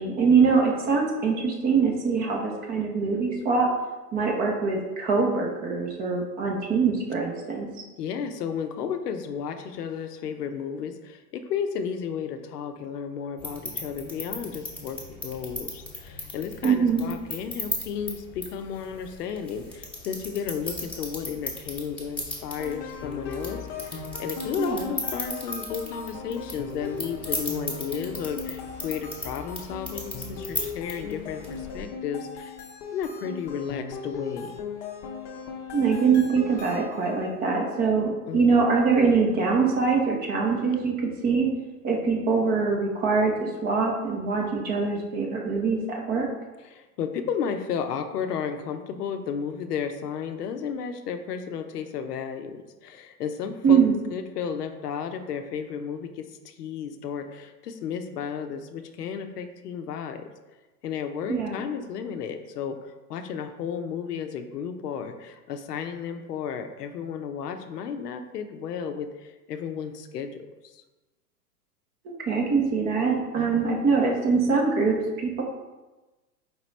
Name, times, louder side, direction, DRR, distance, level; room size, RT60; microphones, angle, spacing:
voice 1, 0.0-3.7 4.1-7.7 16.6-17.0 24.6-24.9 35.7-40.9 41.2-41.5 41.8-46.3 53.6-54.0 61.3-61.6 72.0-75.4, right 5 dB, 20° right, 0 dB, 0.5 m, -23 dB
voice 2, 8.0-32.6 32.9-34.6 38.3-38.5 46.6-53.8 54.1-60.3 60.8-70.8 73.3-73.9, left 7 dB, 75° left, 7 dB, 0.6 m, -33 dB
sound 1, 13.4-31.9, left 2 dB, 5° left, 0.9 m, -37 dB
sound 2, 22.6-37.3, left 5 dB, 35° left, 0.6 m, -38 dB
5.0 x 2.9 x 3.1 m, 1.1 s
hypercardioid pair, 105°, 48 cm